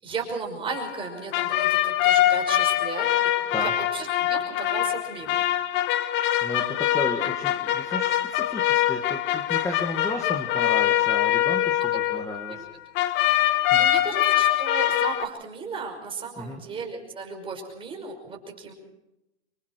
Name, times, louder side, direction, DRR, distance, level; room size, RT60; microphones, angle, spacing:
voice 1, 0.0-3.1 3.6-5.4 11.9-12.0 12.5-12.6 13.8-18.7, right 5 dB, 15° right, 1 dB, 5.6 m, -35 dB
sound 1, 0.7-12.7 13.0-15.2, left 12 dB, 35° left, 1.1 m, -24 dB
voice 2, 6.4-12.6 13.7-13.9 16.4-16.6, left 1 dB, 10° left, 2 dB, 2.0 m, -34 dB
26.0 x 23.0 x 4.7 m, 0.90 s
hypercardioid pair, 135°, 33 cm